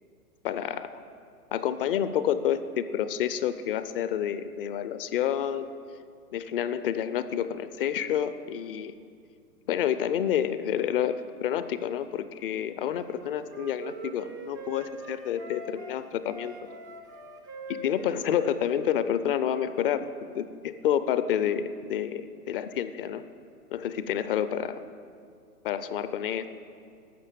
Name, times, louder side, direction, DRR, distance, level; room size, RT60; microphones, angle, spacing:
voice 1, 0.4-0.9 1.5-5.7 6.3-8.9 9.7-16.5 17.7-23.2 23.7-24.8 25.6-26.5, left 9 dB, 40° left, 12 dB, 0.5 m, -29 dB
Wind instrument woodwind instrument, 13.0-16.0 16.3-19.6, right 3 dB, 15° right, 0.3 m, -43 dB
13.0 x 6.8 x 7.2 m, 2.3 s
hypercardioid pair, 120°, 46 cm